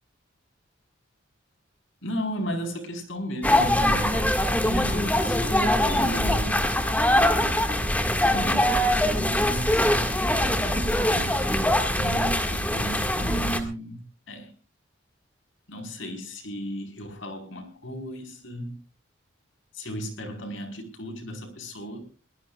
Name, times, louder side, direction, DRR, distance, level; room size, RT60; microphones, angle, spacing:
voice 1, 2.0-4.3 4.6-6.8 8.3-9.9 10.3-14.0 14.3-14.5 15.7-18.8 19.7-22.0, equal, 80° left, 5 dB, 4.7 m, -35 dB
sound 1, 3.4-13.6, left 1 dB, 10° left, 1.9 m, -23 dB
22.5 x 19.5 x 2.4 m, 0.37 s
head